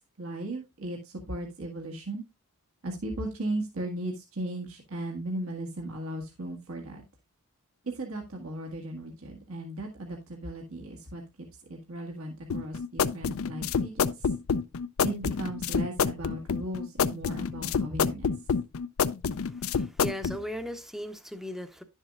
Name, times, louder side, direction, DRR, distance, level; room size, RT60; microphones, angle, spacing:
voice 1, 0.2-2.2 2.8-7.0 7.8-14.3 15.0-18.3, right 1 dB, 70° right, 1.6 m, -36 dB
sound 1, 12.5-20.4, left 6 dB, 65° left, 0.5 m, -28 dB
voice 2, 19.4-21.8, equal, ahead, 0.7 m, -38 dB
11.0 x 7.2 x 2.4 m
head